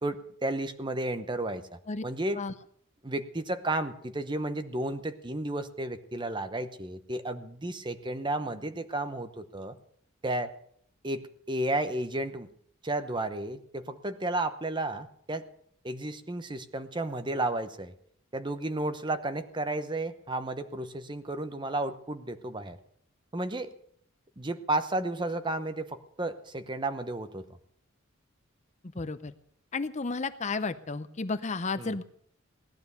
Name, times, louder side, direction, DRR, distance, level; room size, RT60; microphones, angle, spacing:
voice 1, 0.0-2.4 3.0-9.8 10.2-10.5 11.0-12.5 12.8-15.5 15.8-17.9 18.3-22.8 23.3-23.7 24.4-27.4 31.8-32.0, right 2 dB, 20° right, 10 dB, 0.9 m, -33 dB
voice 2, 28.9-29.3 29.7-32.0, left 3 dB, 35° left, 12 dB, 0.6 m, -32 dB
17.5 x 12.0 x 6.9 m, 0.66 s
head